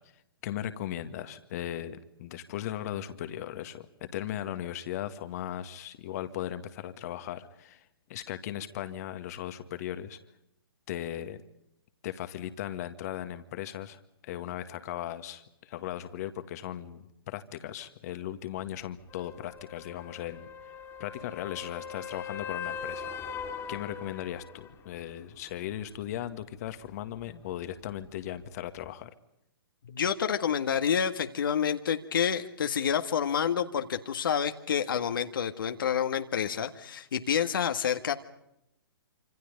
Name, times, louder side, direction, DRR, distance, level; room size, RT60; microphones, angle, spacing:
voice 1, 0.4-10.2 10.9-11.4 12.0-20.5 21.0-23.1 23.7-29.1, left 11 dB, 40° left, 10 dB, 1.8 m, -37 dB
sound 1, 19.1-24.7 28.8-28.9, left 7 dB, 20° left, 2.6 m, -40 dB
voice 2, 29.8-38.1, left 8 dB, 60° left, 6 dB, 1.7 m, -28 dB
27.0 x 26.5 x 5.3 m, 0.83 s
figure-of-eight pair, 125°, 13 cm